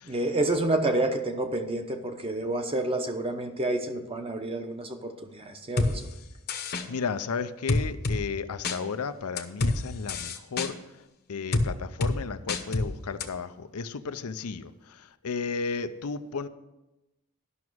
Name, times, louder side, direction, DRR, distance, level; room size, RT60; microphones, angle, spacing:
voice 1, 0.0-6.0, right 2 dB, 25° right, 6 dB, 0.9 m, -29 dB
sound 1, 5.8-5.9 6.5-6.8 7.7-8.2 8.6-8.8 9.4-9.8 10.1-10.7 11.5-11.7 12.0-12.1 12.5-12.9 13.2-13.3, left 2 dB, 45° left, 0.9 m, -26 dB
voice 2, 6.9-10.8 11.3-16.5, left 5 dB, 85° left, 11 dB, 0.6 m, -34 dB
11.0 x 6.0 x 6.2 m, 0.98 s
head